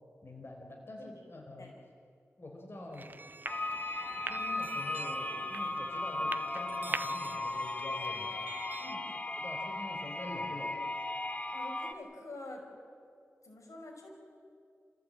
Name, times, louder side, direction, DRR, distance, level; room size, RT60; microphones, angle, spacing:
voice 1, 0.2-1.8 2.4-3.1 4.2-8.4 9.4-10.8, left 1 dB, 50° left, 1 dB, 3.9 m, -46 dB
sound 1, 2.9-9.0, right 3 dB, 35° right, 0.6 m, -44 dB
sound 2, 3.5-11.9, left 2 dB, 25° left, 1.5 m, -36 dB
voice 2, 11.5-12.6 13.4-14.1, left 2 dB, 90° left, 0 dB, 5.6 m, -47 dB
29.5 x 15.5 x 8.8 m, 2.3 s
wide cardioid pair, 75°, 5 cm